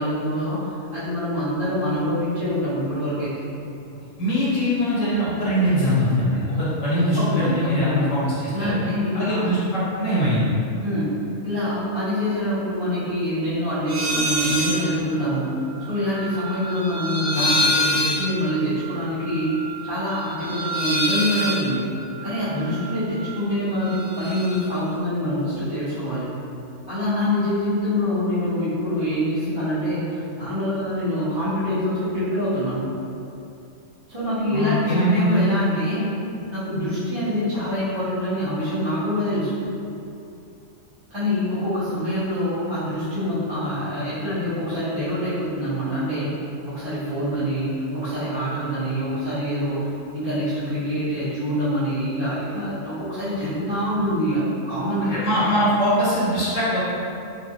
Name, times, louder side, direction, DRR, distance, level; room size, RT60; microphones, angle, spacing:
voice 1, 0.0-3.4 7.0-8.1 8.5-9.5 10.8-19.5 19.8-21.8 22.2-26.4 26.9-32.9 34.1-36.1 36.5-39.6 41.1-46.4 46.6-49.8 50.1-55.1, equal, 25° right, -15 dB, 0.8 m, -25 dB
voice 2, 4.2-8.2 8.6-8.8 9.1-10.5 34.5-35.4 55.0-56.8, equal, 70° left, -10 dB, 1.4 m, -22 dB
sound 1, 13.9-14.8 15.1-23.3 23.6-24.6, left 1 dB, 80° right, 1.3 m, -27 dB
3.2 x 2.5 x 2.8 m, 2.7 s
omnidirectional pair, 1.4 m